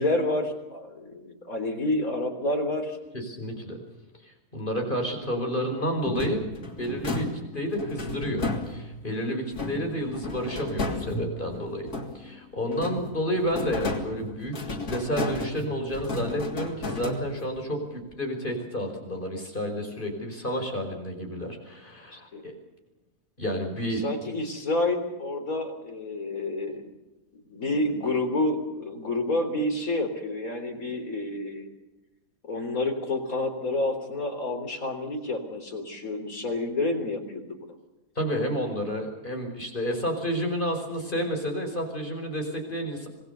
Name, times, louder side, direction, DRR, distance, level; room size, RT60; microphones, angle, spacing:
voice 1, 0.0-3.0 22.1-22.4 24.0-26.8 27.5-31.7 32.4-37.4, left 2 dB, 65° left, 4 dB, 4.1 m, -29 dB
voice 2, 3.1-3.8 4.5-6.4 6.8-11.9 12.1-22.6 23.4-24.1 38.2-43.1, equal, 35° left, 3 dB, 5.3 m, -30 dB
sound 1, 6.0-9.1 9.5-12.4 12.7-17.6, left 2 dB, 90° left, 3.7 m, -33 dB
26.0 x 19.0 x 6.9 m, 1.0 s
omnidirectional pair, 1.6 m